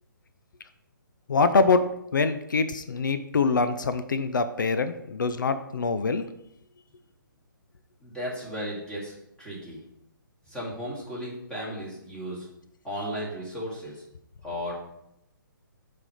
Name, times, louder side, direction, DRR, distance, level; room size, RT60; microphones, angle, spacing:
voice 1, 1.3-6.2, left 4 dB, 65° left, 11 dB, 0.5 m, -24 dB
voice 2, 8.0-9.1 9.4-9.8 10.5-12.5 12.8-14.0 14.4-14.7, equal, 5° left, -8 dB, 2.2 m, -35 dB
8.2 x 3.3 x 5.0 m, 0.80 s
figure-of-eight pair, 135°, 11 cm